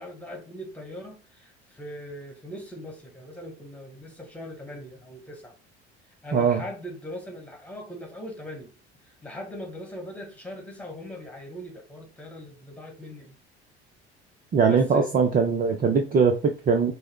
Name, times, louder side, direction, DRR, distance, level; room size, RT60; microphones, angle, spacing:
voice 1, 0.0-5.5 6.2-8.7 9.0-13.4 14.7-15.2, equal, 5° left, 1.6 m, -40 dB
voice 2, 6.3-6.6 14.5-16.9, right 5 dB, 25° right, 0.6 m, -21 dB
5.4 x 2.1 x 3.7 m
figure-of-eight pair, 60°, 33 cm